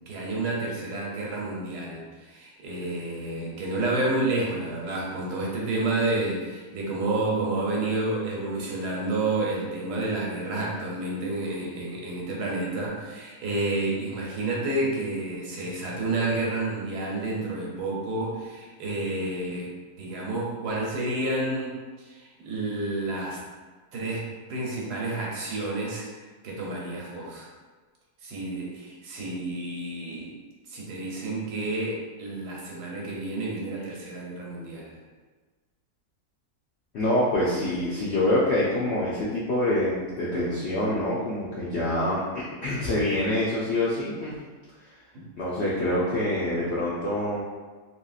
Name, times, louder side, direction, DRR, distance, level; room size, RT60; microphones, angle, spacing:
voice 1, 0.1-23.4 23.9-26.1 26.4-27.5 28.2-30.3 30.7-35.0, right 2 dB, 85° right, -3 dB, 1.3 m, -30 dB
voice 2, 36.9-44.3 45.4-47.4, left 1 dB, 80° left, -7 dB, 0.6 m, -26 dB
2.9 x 2.8 x 2.3 m, 1.3 s
omnidirectional pair, 1.7 m